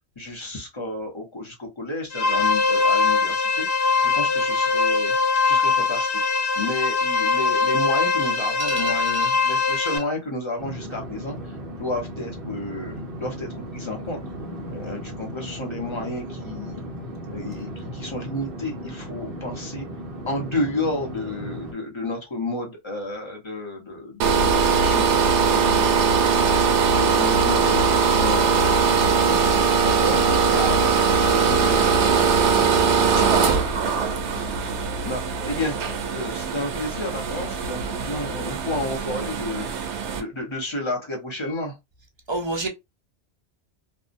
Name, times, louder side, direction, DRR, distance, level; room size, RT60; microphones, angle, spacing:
voice 1, 0.2-5.2 5.4-6.2 6.6-14.2 14.7-16.8 17.3-19.9 20.3-25.1 25.5-26.5 26.8-29.4 29.8-31.0 31.3-31.9 32.4-32.7 35.0-35.7 36.1-39.7 40.1-41.8, left 2 dB, 30° left, 0.7 m, -31 dB
sound 1, 2.1-10.0, left 4 dB, 65° left, 0.9 m, -22 dB
sound 2, 10.6-21.7, equal, 60° right, 0.9 m, -36 dB
sound 3, 24.2-40.2, right 5 dB, 85° right, 0.9 m, -21 dB
voice 2, 33.1-33.6 34.3-34.5 42.3-42.7, right 2 dB, 40° right, 0.4 m, -29 dB
2.6 x 2.1 x 2.5 m
omnidirectional pair, 1.1 m